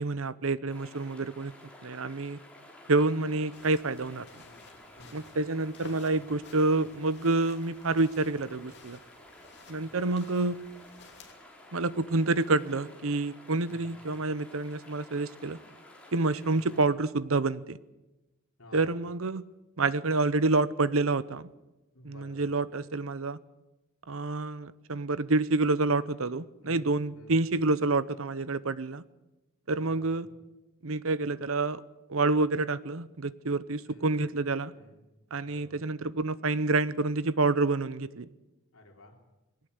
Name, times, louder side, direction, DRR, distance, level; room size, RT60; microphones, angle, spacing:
voice 1, 0.0-1.5 1.8-2.4 2.9-4.2 5.1-9.0 9.7-10.6 11.7-15.6 16.1-17.8 18.7-19.5 19.8-21.5 22.0-23.4 24.1-29.0 29.7-30.3 30.8-31.8 32.1-34.7 35.3-38.3, right 3 dB, 75° right, 16 dB, 0.8 m, -28 dB
sound 1, 0.7-16.8, left 1 dB, 5° left, 4.2 m, -53 dB
sound 2, 3.5-11.3, left 4 dB, 50° left, 2.9 m, -55 dB
voice 2, 4.4-5.3 5.8-6.1 13.7-14.0 16.5-16.7 18.6-19.0 21.9-22.6 26.6-27.5 29.7-30.3 33.9-34.2 34.7-35.0 35.4-35.8 38.7-39.2, left 1 dB, 80° left, 2 dB, 3.5 m, -55 dB
21.5 x 18.5 x 8.1 m, 1.0 s
head